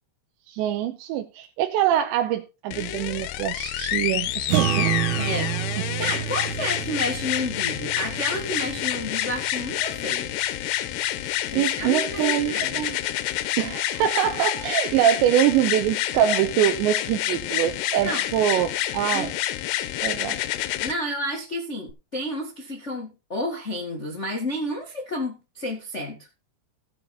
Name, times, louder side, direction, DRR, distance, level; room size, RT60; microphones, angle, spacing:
voice 1, 0.5-4.9 11.5-13.0 13.6-19.3 20.0-20.4, right 11 dB, 85° right, 3.0 m, -24 dB
sound 1, 2.7-20.9 21.9-22.0, left 13 dB, 75° left, 2.8 m, -28 dB
sound 2, 4.5-11.1, right 14 dB, 70° right, 2.6 m, -30 dB
voice 2, 5.2-5.5 6.0-10.3 11.5-12.8 18.0-18.2 19.1-19.3 20.8-26.2, equal, 50° left, 0.8 m, -31 dB
16.0 x 7.1 x 4.0 m
omnidirectional pair, 5.1 m